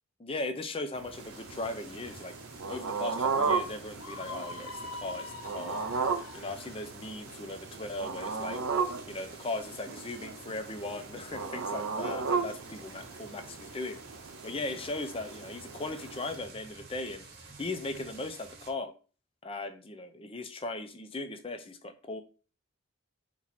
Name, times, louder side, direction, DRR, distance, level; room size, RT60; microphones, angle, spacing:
voice 1, 0.2-2.3 2.7-5.8 6.3-8.6 9.1-14.0 14.4-17.2 17.6-18.9 19.4-22.2, left 2 dB, 25° left, 8 dB, 0.5 m, -38 dB
sound 1, 0.9-16.4, right 5 dB, 85° right, 0.6 m, -36 dB
sound 2, 1.1-18.7, right 3 dB, 45° right, 1.0 m, -51 dB
Screaming, 4.0-6.9, left 3 dB, 80° left, 0.5 m, -43 dB
4.1 x 3.0 x 4.2 m, 0.37 s
head